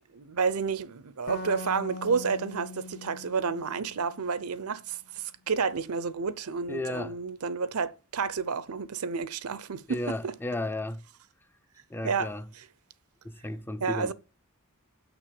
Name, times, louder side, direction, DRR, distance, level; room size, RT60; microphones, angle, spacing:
voice 1, 0.1-10.3 12.0-12.3 12.6-12.7 13.8-14.1, right 5 dB, 80° right, 0.7 m, -30 dB
sound 1, 1.3-4.8, left 2 dB, 40° left, 0.7 m, -42 dB
voice 2, 6.7-7.2 9.9-11.0 11.9-12.5 13.2-14.1, left 2 dB, 10° left, 0.4 m, -34 dB
6.5 x 6.1 x 6.9 m
head